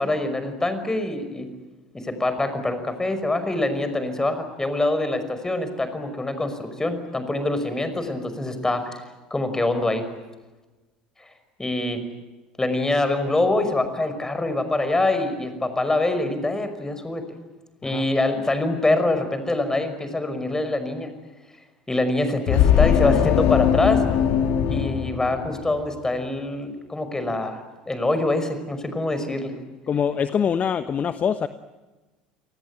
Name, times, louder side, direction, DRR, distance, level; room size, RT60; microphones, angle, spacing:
voice 1, 0.0-1.5 1.9-9.0 9.3-10.1 11.2-11.3 11.6-12.0 12.6-17.2 17.8-21.1 21.9-24.0 24.7-29.5, left 2 dB, 15° left, 10 dB, 5.6 m, -25 dB
sound 1, 22.5-25.9, left 9 dB, 60° left, 2.5 m, -20 dB
voice 2, 29.9-31.5, left 7 dB, 35° left, 11 dB, 1.2 m, -24 dB
29.5 x 19.5 x 9.1 m, 1.2 s
hypercardioid pair, 70°, 4 cm